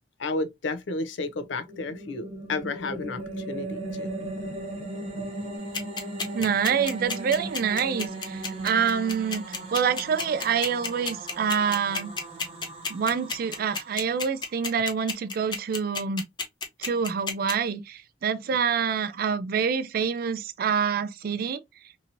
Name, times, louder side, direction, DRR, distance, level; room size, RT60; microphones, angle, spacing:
voice 1, 0.2-4.1 5.2-5.3, left 3 dB, 80° left, 0.5 m, -32 dB
sound 1, 1.3-14.7, right 2 dB, 30° right, 0.8 m, -38 dB
sound 2, 5.7-17.5, left 4 dB, 25° left, 0.5 m, -30 dB
voice 2, 6.3-12.1 12.9-16.2 16.8-21.6, right 6 dB, 50° right, 0.3 m, -26 dB
2.8 x 2.7 x 2.5 m
head